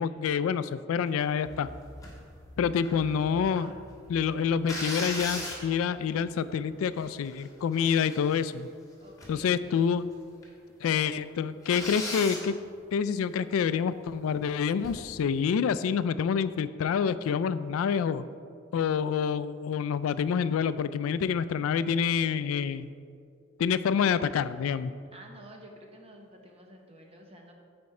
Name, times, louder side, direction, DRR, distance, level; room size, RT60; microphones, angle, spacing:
voice 1, 0.0-1.7 2.6-3.7 4.1-8.7 9.3-10.1 10.8-12.5 12.9-18.2 18.7-22.9 23.6-24.9, left 7 dB, 85° left, 15 dB, 0.3 m, -27 dB
sound 1, 1.4-7.2, equal, 10° right, 0.5 m, -50 dB
sound 2, 2.0-2.2 2.8-3.7 4.6-6.0 6.6-6.7 7.0-7.4 7.7-8.6 9.2-9.5 9.7-9.8 10.4-10.5 10.8-10.9 11.6-12.5 14.8-15.1, left 2 dB, 15° left, 1.4 m, -37 dB
voice 2, 9.0-9.6 25.1-27.5, right 1 dB, 30° right, 1 dB, 1.0 m, -50 dB
9.4 x 4.3 x 4.8 m, 2.2 s
head